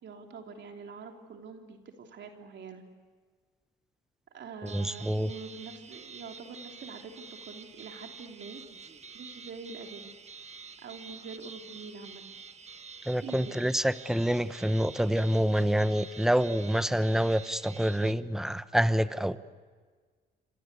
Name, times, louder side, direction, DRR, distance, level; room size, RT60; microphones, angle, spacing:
voice 1, 0.0-2.8 4.3-8.9 9.1-10.1 10.8-12.4 13.2-13.5 14.4-14.6, right 5 dB, 65° right, 3 dB, 3.2 m, -45 dB
voice 2, 4.6-5.3 13.1-19.4, equal, ahead, 13 dB, 1.0 m, -27 dB
sound 1, 4.7-18.1, right 5 dB, 35° right, 1.4 m, -48 dB
28.0 x 25.5 x 8.3 m, 1.5 s
cardioid pair, 90°, 20 cm